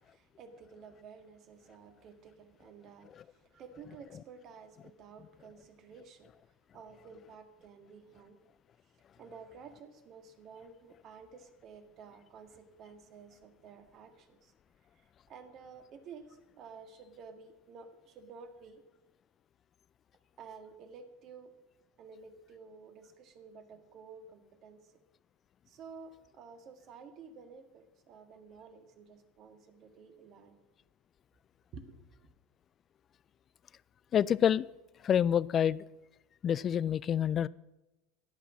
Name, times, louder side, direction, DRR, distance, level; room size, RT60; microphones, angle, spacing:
voice 1, 0.0-6.3 6.7-8.4 9.2-14.5 14.9-18.8 20.4-21.6 22.0-24.9 25.7-30.6 31.7-32.1, right 5 dB, 45° right, 7 dB, 1.7 m, -52 dB
voice 2, 34.1-34.7 35.0-35.8 36.4-37.5, left 9 dB, 35° left, 20 dB, 0.3 m, -27 dB
15.5 x 5.9 x 7.4 m, 1.0 s
hypercardioid pair, 80°, 0 cm